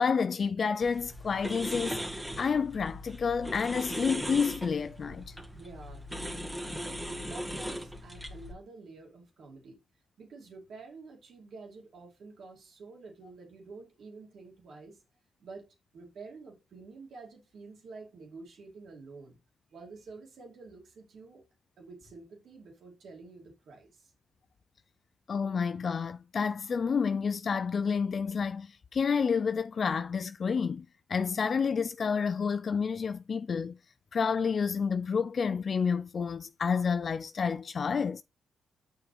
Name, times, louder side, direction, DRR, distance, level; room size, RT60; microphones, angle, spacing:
voice 1, 0.0-2.0 2.4-5.3 25.3-33.8 34.1-38.2, left 6 dB, 55° left, 0.3 m, -29 dB
sound 1, 0.8-8.5, equal, 10° right, 1.7 m, -39 dB
voice 2, 5.5-6.4 6.7-9.8 10.2-15.0 15.4-15.7 15.9-19.4 19.7-21.4 21.8-24.1, right 3 dB, 65° right, 2.6 m, -49 dB
7.2 x 5.7 x 3.3 m
supercardioid pair, 55°, 0 cm